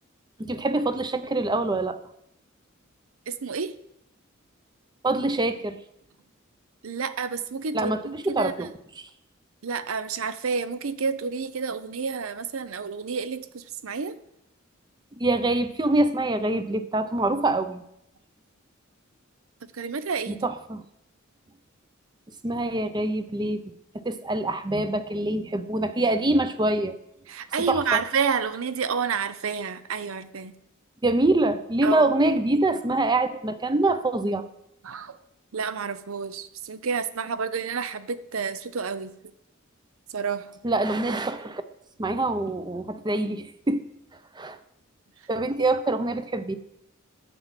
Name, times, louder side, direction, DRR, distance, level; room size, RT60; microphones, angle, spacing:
voice 1, 0.4-2.0 5.0-5.8 7.7-8.7 15.2-17.8 20.3-20.8 22.4-23.6 24.0-26.9 27.7-28.0 31.0-34.4 40.6-41.6 42.0-43.8 44.4-44.6 45.3-46.6, right 2 dB, 20° right, 11 dB, 0.6 m, -25 dB
voice 2, 3.3-3.7 6.8-8.7 9.6-14.2 19.8-20.4 27.3-30.6 31.8-32.1 34.8-35.1 35.5-39.1 40.1-40.5, right 5 dB, 80° right, 14 dB, 0.6 m, -29 dB
9.1 x 7.1 x 5.8 m, 0.78 s
head